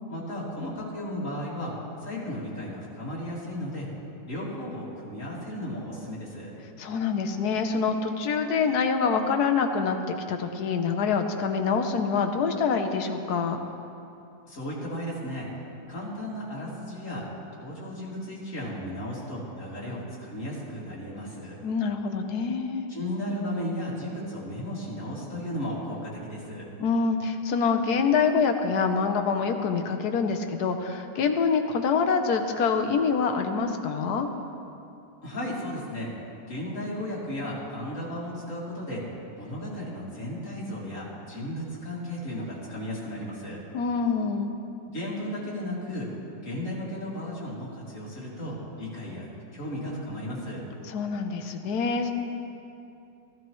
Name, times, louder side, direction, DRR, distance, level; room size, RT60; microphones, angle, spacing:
voice 1, 0.1-1.7 2.0-3.9 4.2-6.5 14.5-15.5 15.9-17.3 17.5-21.6 22.9-26.7 35.2-36.1 36.5-39.0 39.3-43.6 44.8-46.2 46.4-50.6, equal, 50° left, -6 dB, 2.9 m, -35 dB
voice 2, 6.8-13.6 21.6-22.9 26.8-34.3 43.7-44.5 50.9-52.1, left 5 dB, 75° left, 6 dB, 1.3 m, -26 dB
14.5 x 14.5 x 3.1 m, 2.7 s
omnidirectional pair, 1.7 m